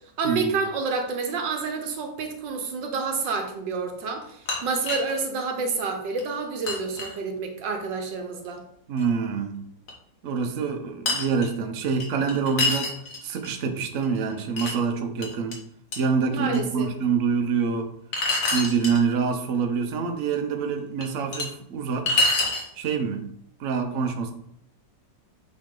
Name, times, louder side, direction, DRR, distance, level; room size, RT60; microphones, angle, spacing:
voice 1, 0.2-8.6 16.3-16.9, right 4 dB, 85° right, 4 dB, 1.7 m, -29 dB
sound 1, 4.2-5.2 5.7-5.8 6.2-6.3 6.7-7.2 9.0-9.1 9.9-10.0 11.1-11.5 12.0-13.5 14.0-14.7 15.2-15.5 15.9-16.0 16.5-16.6 18.1-19.0 20.3-20.4 21.0-21.5 22.1-22.7, left 2 dB, 50° left, 1.6 m, -26 dB
voice 2, 8.9-9.6 10.2-12.9 13.2-15.6 16.0-17.9 18.5-22.2 22.8-23.2 23.6-24.3, right 5 dB, 55° right, 5 dB, 1.1 m, -26 dB
7.6 x 4.0 x 3.8 m, 0.70 s
omnidirectional pair, 1.9 m